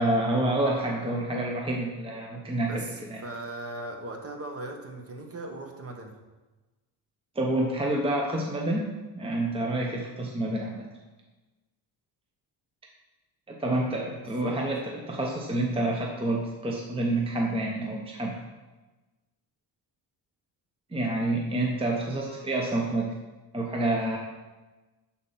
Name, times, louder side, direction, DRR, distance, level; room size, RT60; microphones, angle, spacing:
voice 1, 0.0-2.7 3.1-3.2 7.3-10.9 13.5-18.4 20.9-23.1 23.5-24.2, right 1 dB, 15° right, -1 dB, 0.9 m, -28 dB
voice 2, 2.6-6.2 14.2-14.6, right 2 dB, 35° right, 3 dB, 1.3 m, -39 dB
12.0 x 4.4 x 5.7 m, 1.2 s
cardioid pair, 150°, 42 cm